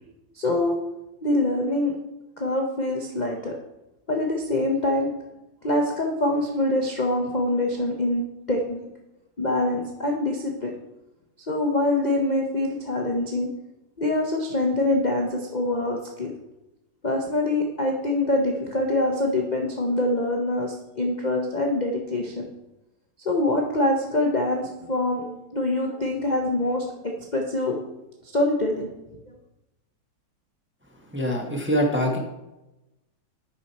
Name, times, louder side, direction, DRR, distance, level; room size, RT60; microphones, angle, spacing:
voice 1, 0.4-0.8 1.2-1.9 2.4-3.5 4.1-5.1 5.6-8.8 9.4-10.7 11.5-13.5 14.0-16.3 17.0-22.5 23.2-24.6 24.9-27.7 28.3-28.9, left 1 dB, 35° left, 0 dB, 0.8 m, -24 dB
voice 2, 31.1-32.2, equal, 10° right, 1 dB, 1.0 m, -24 dB
9.7 x 6.3 x 4.2 m, 0.96 s
omnidirectional pair, 2.1 m